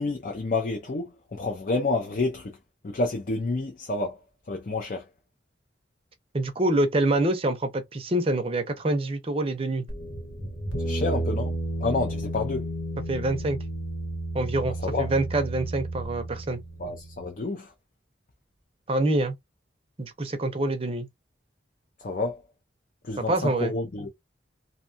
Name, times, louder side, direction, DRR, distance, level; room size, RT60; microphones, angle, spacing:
voice 1, 0.0-2.6 2.8-4.2 4.5-5.1 10.8-11.5 11.8-12.7 14.9-15.1 16.8-17.7 22.0-22.4 23.0-24.1, left 3 dB, 45° left, 0.5 m, -29 dB
voice 2, 6.3-9.9 13.1-13.6 14.3-16.6 18.9-19.3 20.0-21.1 23.2-23.7, right 2 dB, 30° right, 0.5 m, -26 dB
sound 1, 9.9-17.3, right 1 dB, 85° left, 1.0 m, -32 dB
2.6 x 2.3 x 2.6 m
head